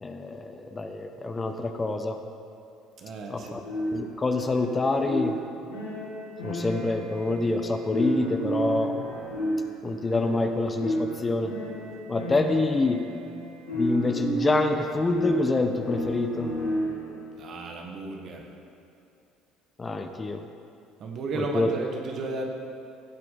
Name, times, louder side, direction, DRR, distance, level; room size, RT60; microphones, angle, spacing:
voice 1, 0.0-2.2 3.3-3.6 3.9-5.4 6.4-8.9 9.8-11.5 12.1-13.0 13.7-16.5 19.8-20.4 21.3-21.7, left 2 dB, 25° left, 6 dB, 0.9 m, -26 dB
voice 2, 3.0-3.6 17.4-18.4 21.0-22.5, right 2 dB, 50° right, 2 dB, 1.6 m, -33 dB
sound 1, 3.6-17.2, equal, 85° left, 2.4 m, -32 dB
15.0 x 7.6 x 4.1 m, 2.6 s
hypercardioid pair, 65°, 0 cm